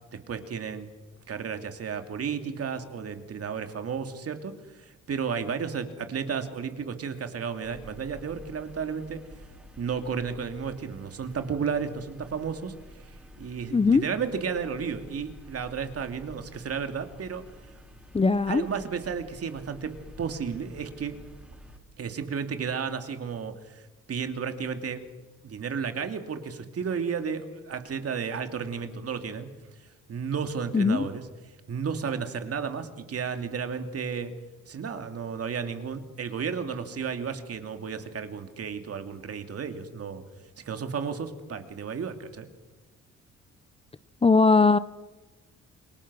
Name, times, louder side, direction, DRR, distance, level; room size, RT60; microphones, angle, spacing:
voice 1, 0.1-0.9 1.3-9.2 9.8-12.7 13.4-17.5 18.5-21.2 22.0-23.8 24.1-25.0 25.4-29.5 30.1-31.2 31.7-34.3 34.7-40.2 40.6-42.5, right 6 dB, 50° right, 7 dB, 2.7 m, -33 dB
sound 1, 7.6-21.8, equal, 5° right, 5.3 m, -50 dB
voice 2, 13.7-14.0 18.1-18.6 30.7-31.1 44.2-44.8, left 4 dB, 20° left, 15 dB, 0.7 m, -20 dB
28.0 x 22.0 x 6.3 m, 1.1 s
cardioid pair, 90°, 30 cm